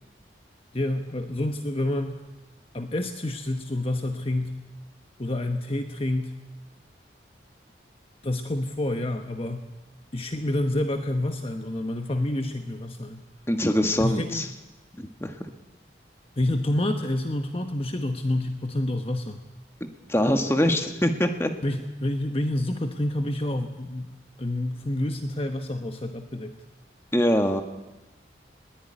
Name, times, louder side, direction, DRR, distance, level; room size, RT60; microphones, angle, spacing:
voice 1, 0.7-2.2 2.7-4.6 5.2-6.4 8.2-9.7 10.1-13.2 14.0-14.4 16.4-19.4 21.6-24.1 24.4-26.6, left 1 dB, 30° left, 6 dB, 1.1 m, -28 dB
voice 2, 13.5-14.5 15.0-15.3 20.1-21.5 27.1-27.6, left 1 dB, 15° left, 6 dB, 1.6 m, -23 dB
21.0 x 18.0 x 9.9 m, 1.1 s
head